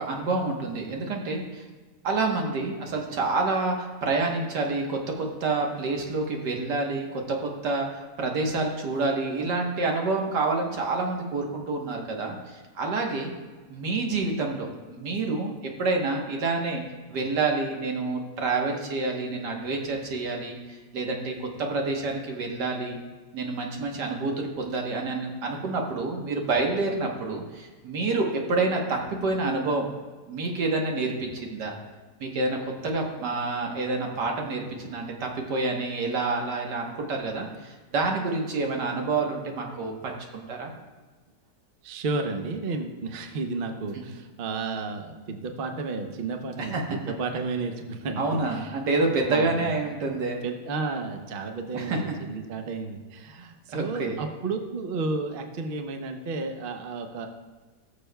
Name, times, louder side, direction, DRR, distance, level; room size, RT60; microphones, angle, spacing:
voice 1, 0.0-1.6 2.0-7.9 8.2-13.3 13.7-15.5 15.8-16.8 17.1-20.6 20.9-23.0 23.3-29.9 30.3-31.7 32.2-32.6 32.8-40.7 44.0-44.1 46.7-47.0 48.2-50.4 51.7-52.0 53.7-54.2, right 3 dB, 80° right, 1 dB, 1.8 m, -28 dB
voice 2, 41.8-48.7 49.3-49.8 50.2-57.3, right 3 dB, 50° right, 5 dB, 0.7 m, -32 dB
19.0 x 6.7 x 2.3 m, 1.3 s
omnidirectional pair, 1.8 m